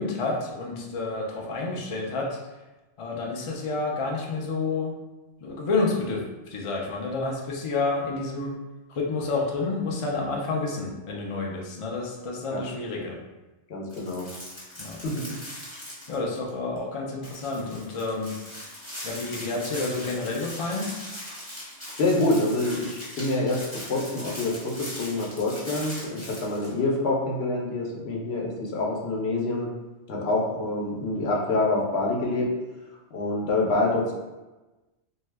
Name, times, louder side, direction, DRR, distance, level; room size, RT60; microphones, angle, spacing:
voice 1, 0.0-2.4 3.0-4.9 5.4-8.6 8.9-13.2 14.8-15.0 16.1-18.4 19.0-20.9, left 3 dB, 55° left, -1 dB, 0.3 m, -29 dB
voice 2, 13.7-14.3 15.0-15.4 22.0-23.6 23.9-29.7 30.1-32.5 33.1-34.1, left 2 dB, 70° left, -2 dB, 0.9 m, -26 dB
sound 1, 13.9-16.5 16.8-16.9 17.2-26.7, left 1 dB, 15° left, 0.9 m, -40 dB
2.7 x 2.2 x 3.3 m, 1.1 s
omnidirectional pair, 1.1 m